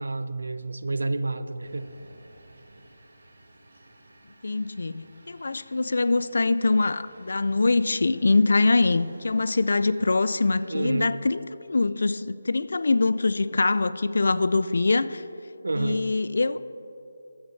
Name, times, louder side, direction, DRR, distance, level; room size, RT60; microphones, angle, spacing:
voice 1, 0.0-1.9 10.7-11.1 15.6-16.0, right 2 dB, 80° right, 13 dB, 0.4 m, -29 dB
sound 1, 1.6-11.0, right 1 dB, 60° right, 1.4 m, -55 dB
voice 2, 4.4-15.2 15.8-16.6, left 3 dB, 60° left, 15 dB, 0.3 m, -23 dB
12.5 x 7.9 x 3.2 m, 2.8 s
figure-of-eight pair, 175°, 0 cm